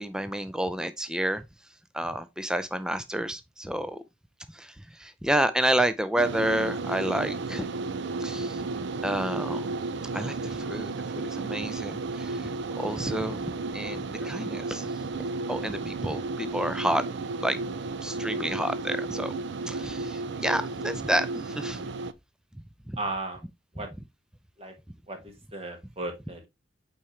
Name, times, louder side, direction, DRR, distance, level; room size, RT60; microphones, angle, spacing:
voice 1, 0.0-1.5 1.9-4.0 4.5-7.7 8.2-8.6 9.0-9.7 10.1-12.5 12.8-17.0 17.4-17.6 18.0-19.3 19.7-21.8 22.9-23.0, right 1 dB, 5° right, 0.4 m, -30 dB
sound 1, 6.2-22.1, right 3 dB, 60° right, 0.5 m, -33 dB
voice 2, 23.0-23.4 23.7-23.9 24.6-24.7 25.1-26.5, right 2 dB, 30° right, 1.6 m, -35 dB
8.5 x 4.3 x 3.2 m
head